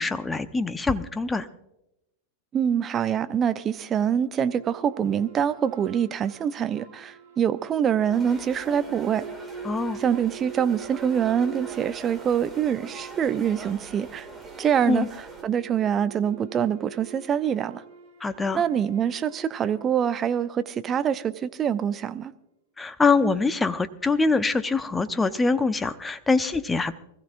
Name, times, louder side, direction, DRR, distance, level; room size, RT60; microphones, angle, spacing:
voice 1, 0.0-1.5 9.6-10.0 14.9-15.1 18.2-18.6 22.8-26.9, left 3 dB, 10° left, 0.8 m, -24 dB
voice 2, 2.5-9.2 10.0-14.3 14.6-15.1 15.4-17.8 18.5-22.3, right 8 dB, 25° right, 0.7 m, -25 dB
sound 1, 4.3-20.9, right 7 dB, 60° right, 5.2 m, -44 dB
sound 2, 8.1-15.4, right 2 dB, 10° right, 2.2 m, -43 dB
24.5 x 15.0 x 2.5 m
figure-of-eight pair, 90°, 0 cm